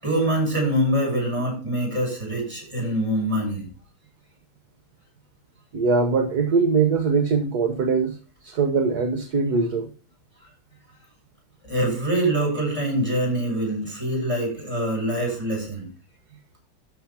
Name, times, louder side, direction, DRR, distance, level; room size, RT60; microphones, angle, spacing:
voice 1, 0.0-3.7 11.7-15.9, right 1 dB, 15° right, 6.4 m, -24 dB
voice 2, 5.7-8.2 8.4-9.9, right 4 dB, 55° right, 1.5 m, -22 dB
12.5 x 4.9 x 5.8 m
omnidirectional pair, 2.2 m